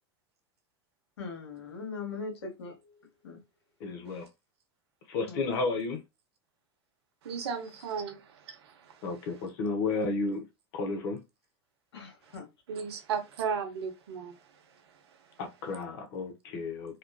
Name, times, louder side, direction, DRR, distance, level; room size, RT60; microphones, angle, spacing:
voice 1, 1.2-2.9 3.2-3.4 5.3-5.4 11.9-12.5, left 4 dB, 85° left, 1.3 m, -40 dB
voice 2, 3.8-4.3 5.1-6.0 9.0-10.5 10.7-11.2 15.4-17.0, left 3 dB, 65° left, 1.0 m, -32 dB
voice 3, 7.2-9.5 12.2-12.4 12.7-15.4, right 6 dB, 75° right, 1.1 m, -37 dB
3.5 x 2.4 x 2.3 m
hypercardioid pair, 100°, 14 cm